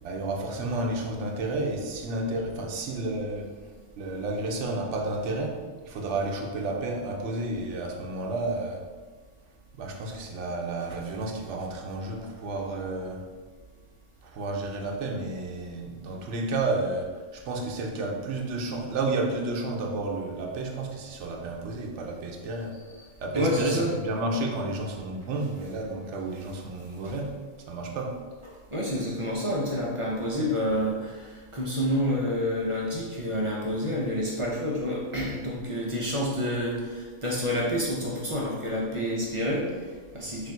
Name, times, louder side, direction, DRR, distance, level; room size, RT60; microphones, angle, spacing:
voice 1, 0.0-3.5 4.0-8.8 9.7-13.2 14.2-22.8 23.2-27.4 27.7-28.2, right 2 dB, 75° right, 1 dB, 0.9 m, -31 dB
voice 2, 23.3-24.0 27.0-27.1 28.7-40.5, equal, 35° right, -4 dB, 0.5 m, -28 dB
3.3 x 2.5 x 4.4 m, 1.4 s
omnidirectional pair, 1.3 m